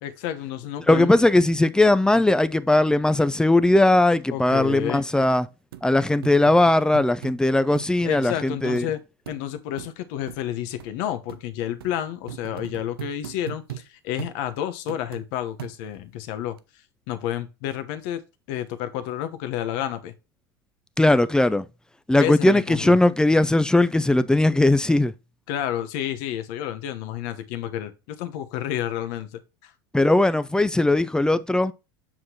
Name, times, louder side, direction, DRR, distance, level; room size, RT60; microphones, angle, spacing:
voice 1, 0.0-1.1 4.3-5.0 8.0-9.0 9.3-16.6 17.1-18.2 18.5-20.1 22.2-23.0 25.5-29.7, left 11 dB, 65° left, 1.1 m, -30 dB
voice 2, 0.9-5.5 5.8-8.9 21.0-21.6 22.1-25.1 29.9-31.7, left 2 dB, 5° left, 0.5 m, -19 dB
sound 1, 4.7-4.8 5.2-5.3 5.7-5.9 6.2-7.4 7.8-7.9 8.2-8.3 8.8-8.9 9.3-9.4 9.8-9.9 10.3-10.4 10.8-10.9 11.3-11.4 11.8-11.9 12.3-13.9 14.2-14.4 14.9-15.3 15.6-16.0 16.6-16.7, right 13 dB, 85° right, 0.6 m, -38 dB
7.6 x 6.3 x 2.9 m
hypercardioid pair, 85°, 12 cm